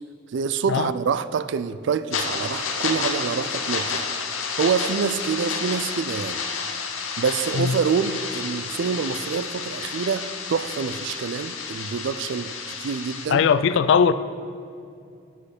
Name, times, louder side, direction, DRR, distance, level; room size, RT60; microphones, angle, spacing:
voice 1, 0.3-4.1 4.6-6.4 7.2-13.5, right 6 dB, 60° right, 0.3 m, -26 dB
sound 1, 2.1-13.3, left 5 dB, 80° left, 0.9 m, -30 dB
voice 2, 13.3-14.1, left 6 dB, 65° left, 0.3 m, -19 dB
7.5 x 6.4 x 6.6 m
head